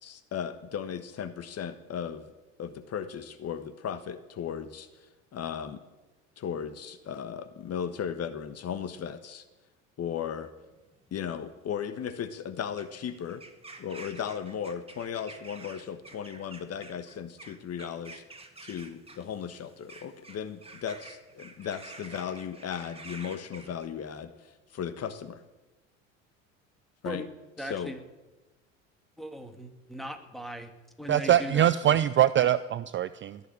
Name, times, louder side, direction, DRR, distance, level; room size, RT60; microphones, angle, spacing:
voice 1, 0.0-2.3 2.6-5.8 6.4-9.4 10.0-10.5 11.1-13.4 13.8-18.2 18.6-25.4 27.0-27.2 27.6-27.9, left 8 dB, 40° left, 11 dB, 1.3 m, -36 dB
sound 1, 10.5-23.8, right 3 dB, 15° right, 2.4 m, -50 dB
voice 2, 27.6-28.0 29.2-30.7 31.0-32.0, equal, ahead, 5 dB, 2.6 m, -39 dB
voice 3, 31.1-33.4, right 11 dB, 30° right, 15 dB, 0.5 m, -23 dB
19.5 x 7.1 x 10.0 m, 1.1 s
hypercardioid pair, 75°, 39 cm